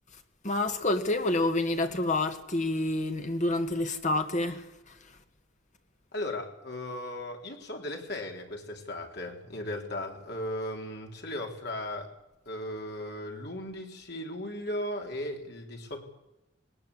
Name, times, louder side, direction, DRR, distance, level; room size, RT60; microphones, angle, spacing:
voice 1, 0.4-5.0, left 2 dB, 40° left, 1.8 m, -28 dB
voice 2, 6.1-12.1 12.5-16.0, left 1 dB, 60° left, 3.6 m, -36 dB
19.5 x 19.5 x 8.5 m
head